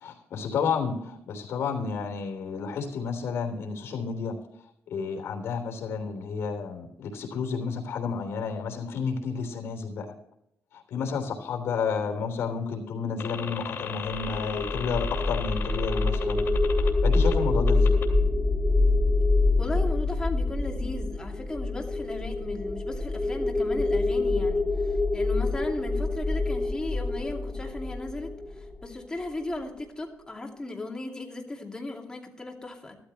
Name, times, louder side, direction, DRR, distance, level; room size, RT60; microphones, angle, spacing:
voice 1, 0.0-4.4 4.9-10.1 10.7-16.4 16.7-18.0, left 5 dB, 70° left, 4 dB, 3.3 m, -31 dB
sound 1, 13.2-17.3 17.7-18.1, left 7 dB, 55° left, 2.8 m, -36 dB
sound 2, 14.1-29.2, left 3 dB, ahead, 3.2 m, -26 dB
voice 2, 19.6-33.0, left 2 dB, 15° left, 1 dB, 2.5 m, -36 dB
14.5 x 13.5 x 3.2 m, 0.77 s
cardioid pair, 135°, 4 cm